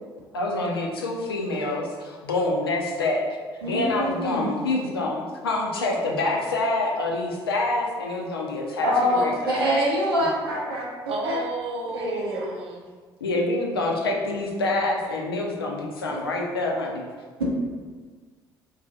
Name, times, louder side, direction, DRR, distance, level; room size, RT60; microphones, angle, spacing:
voice 1, 0.3-3.3 3.6-9.6 13.2-17.0, left 2 dB, 85° left, 0 dB, 0.5 m, -26 dB
voice 2, 3.6-4.5 8.8-11.4 11.9-12.5 16.1-16.2, equal, 80° right, -5 dB, 0.8 m, -25 dB
voice 3, 11.1-12.8, right 2 dB, 50° right, 1 dB, 0.6 m, -32 dB
3.0 x 2.7 x 3.7 m, 1.5 s
figure-of-eight pair, 50°, 12 cm